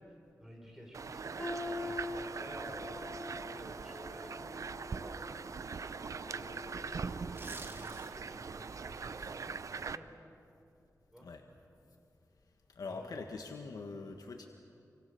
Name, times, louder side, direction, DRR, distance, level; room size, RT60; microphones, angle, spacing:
voice 1, 0.0-1.4 1.8-4.6 5.0-5.9 6.3-7.2 7.6-10.1 11.1-11.3 12.8-13.3, equal, 5° right, -1 dB, 5.9 m, -53 dB
sound 1, 0.9-10.0, right 5 dB, 60° right, 0.6 m, -42 dB
sound 2, 1.4-7.3 7.7-8.0 8.7-8.8, left 2 dB, 15° left, 4.5 m, -45 dB
sound 3, 7.4-8.4 8.8-9.0, right 2 dB, 40° right, 2.0 m, -48 dB
voice 2, 12.7-14.5, left 4 dB, 90° left, 3 dB, 1.5 m, -43 dB
28.0 x 25.0 x 6.9 m, 2.5 s
wide cardioid pair, 135°, 6 cm